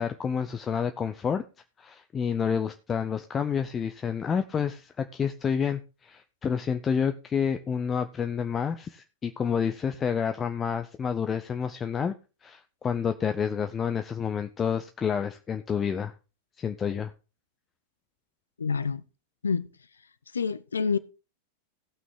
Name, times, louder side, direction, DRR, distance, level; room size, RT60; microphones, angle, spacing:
voice 1, 0.0-1.4 1.8-12.1 12.4-16.1 16.6-17.1, left 7 dB, 20° left, 0.6 m, -29 dB
voice 2, 18.6-19.0 19.4-19.7 20.3-21.0, left 5 dB, 75° left, 0.6 m, -27 dB
17.0 x 6.1 x 3.7 m
figure-of-eight pair, 90°, 0 cm